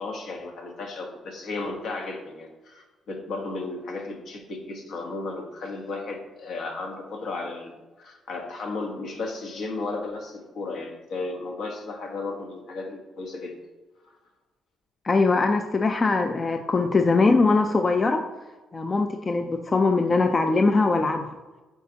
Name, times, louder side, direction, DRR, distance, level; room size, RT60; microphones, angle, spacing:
voice 1, 0.0-13.5 14.0-14.2, left 3 dB, 70° left, 2 dB, 1.3 m, -34 dB
voice 2, 15.0-18.2 18.7-21.4, left 3 dB, 30° left, 6 dB, 0.4 m, -21 dB
9.1 x 4.2 x 2.8 m, 1.2 s
cardioid pair, 90°, 0 cm